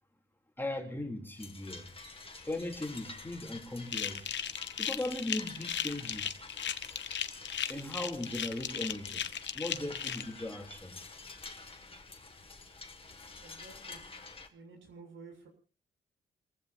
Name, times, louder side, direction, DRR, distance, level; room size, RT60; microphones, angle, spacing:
voice 1, 0.6-1.9 2.4-4.3 4.8-6.4 7.7-9.2 9.5-11.1, left 1 dB, 10° left, 3.4 m, -38 dB
sound 1, 1.4-14.5, left 3 dB, 30° left, 2.1 m, -49 dB
sound 2, 3.9-10.2, left 9 dB, 70° left, 1.0 m, -36 dB
voice 2, 13.4-14.0 14.5-15.5, right 4 dB, 85° right, 7.0 m, -52 dB
28.5 x 15.5 x 2.8 m
cardioid pair, 110°, 20 cm